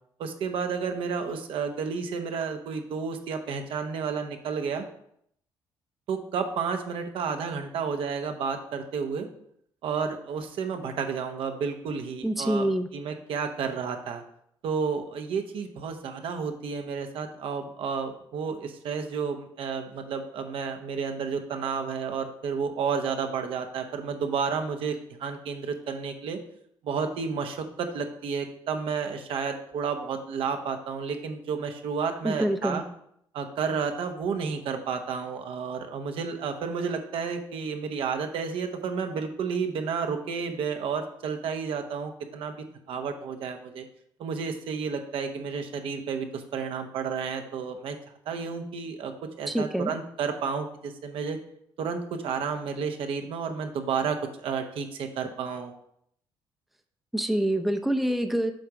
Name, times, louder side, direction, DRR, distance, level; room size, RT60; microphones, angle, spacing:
voice 1, 0.2-4.8 6.1-9.3 9.8-14.2 14.6-24.9 25.2-26.4 26.8-32.8 33.3-42.5 42.9-43.8 44.2-48.0 48.3-49.1 49.4-51.4 51.8-55.7, right 6 dB, 70° right, 5 dB, 0.9 m, -31 dB
voice 2, 12.2-12.9 32.2-32.8 49.5-49.9 57.1-58.5, right 1 dB, ahead, 7 dB, 0.6 m, -26 dB
7.6 x 3.6 x 5.0 m, 0.70 s
cardioid pair, 85°, 10 cm